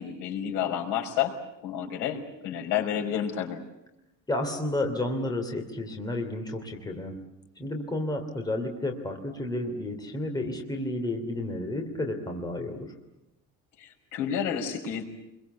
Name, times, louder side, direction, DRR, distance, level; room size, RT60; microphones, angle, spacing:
voice 1, 0.0-1.3 1.6-3.6 13.8-15.0, left 9 dB, 75° left, 3 dB, 5.4 m, -30 dB
voice 2, 4.3-7.1 7.6-12.9, left 1 dB, 10° left, 4 dB, 3.0 m, -31 dB
28.0 x 22.5 x 8.3 m, 0.93 s
cardioid pair, 170°, 31 cm